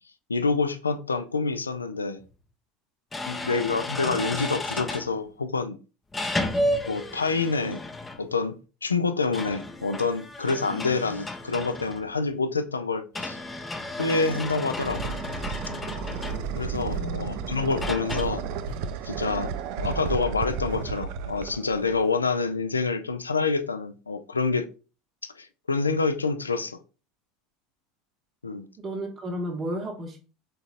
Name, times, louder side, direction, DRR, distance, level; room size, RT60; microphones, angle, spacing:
voice 1, 0.3-2.2 3.3-5.8 6.8-7.8 8.2-13.4 14.0-15.1 16.6-18.5 19.0-19.5 19.8-24.7 25.2-26.8 28.4-28.7, left 4 dB, 80° left, 0.3 m, -27 dB
sound 1, 2.2-2.3 3.1-5.1 6.1-8.4 9.2-12.2 13.1-16.7 17.8-18.2, left 1 dB, 15° left, 0.6 m, -32 dB
sound 2, 14.2-22.2, right 6 dB, 55° right, 0.4 m, -33 dB
sound 3, 15.7-15.8 16.3-17.1 17.8-19.0 19.5-19.7 20.1-20.3 20.7-21.0 21.7-21.8, right 4 dB, 70° right, 0.8 m, -37 dB
voice 2, 16.8-17.2 28.8-30.2, equal, 30° right, 0.8 m, -33 dB
3.9 x 3.8 x 2.4 m
figure-of-eight pair, 70°, 0 cm